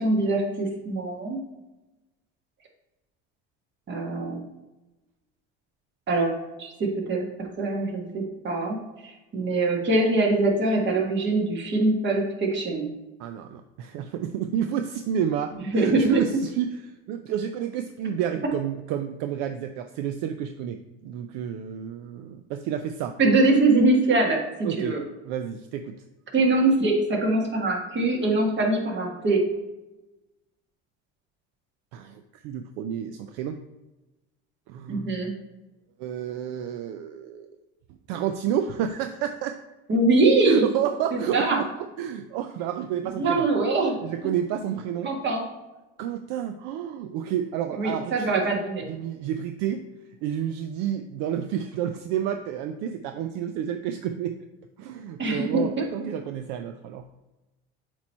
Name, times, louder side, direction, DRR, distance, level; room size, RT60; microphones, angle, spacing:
voice 1, 0.0-1.4 3.9-4.4 6.1-6.3 6.6-12.9 15.7-16.2 23.2-25.0 26.3-29.5 34.9-35.3 39.9-40.7 41.1-41.6 43.2-44.0 45.0-45.4 47.7-48.8 55.2-55.8, right 2 dB, 40° right, 1 dB, 1.7 m, -23 dB
voice 2, 13.2-23.2 24.6-25.0 25.2-25.9 31.9-33.6 34.7-35.2 36.0-37.6 38.1-39.5 40.5-41.7 42.0-43.5 44.0-45.1 46.0-48.6 48.9-49.9 50.2-54.3 54.8-57.1, right 9 dB, 70° right, 7 dB, 0.5 m, -30 dB
8.1 x 3.1 x 4.3 m, 1.1 s
supercardioid pair, 95°, 30 cm